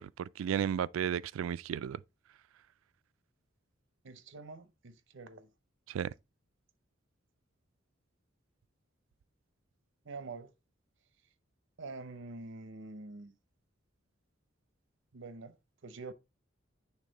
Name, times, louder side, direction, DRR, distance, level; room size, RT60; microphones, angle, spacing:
voice 1, 0.0-2.0 5.9-6.1, right 8 dB, 85° right, 0.3 m, -34 dB
voice 2, 4.0-5.5 10.0-10.5 11.8-13.3 15.1-15.6 15.8-16.1, right 3 dB, 65° right, 0.7 m, -46 dB
8.4 x 3.5 x 3.9 m
head